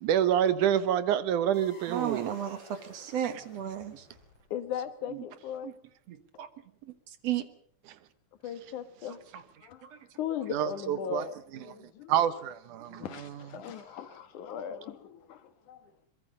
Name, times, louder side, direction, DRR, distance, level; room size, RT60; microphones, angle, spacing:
voice 1, 0.0-2.3 10.5-11.2 12.1-13.3, right 10 dB, 85° right, 2.6 m, -27 dB
sound 1, 1.5-4.7, left 1 dB, 50° left, 8.2 m, -54 dB
voice 2, 1.9-4.1 5.6-5.7 6.1-6.5 7.2-7.5 9.8-10.0, right 10 dB, 60° right, 2.3 m, -34 dB
voice 3, 4.5-5.8 8.4-9.2 9.6-9.8 10.2-12.2 12.9-15.9, left 9 dB, 80° left, 2.9 m, -38 dB
23.0 x 22.0 x 5.4 m
omnidirectional pair, 3.5 m